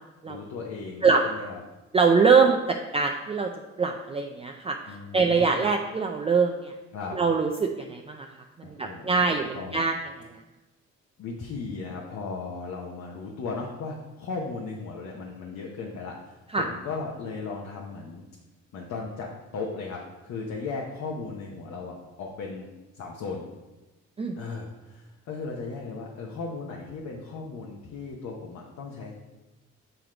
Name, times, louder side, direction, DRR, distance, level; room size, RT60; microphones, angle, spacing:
voice 1, 0.3-1.6 4.8-5.6 6.9-7.2 8.6-9.8 11.2-18.2 18.7-23.4 24.4-29.1, left 4 dB, 65° left, -1 dB, 0.9 m, -36 dB
voice 2, 1.9-3.5 3.8-4.8 5.1-6.7 7.1-8.3 8.6-9.9 16.5-16.7 24.2-24.4, right 5 dB, 20° right, 3 dB, 0.4 m, -23 dB
7.8 x 3.0 x 5.0 m, 1.1 s
cardioid pair, 90°, 30 cm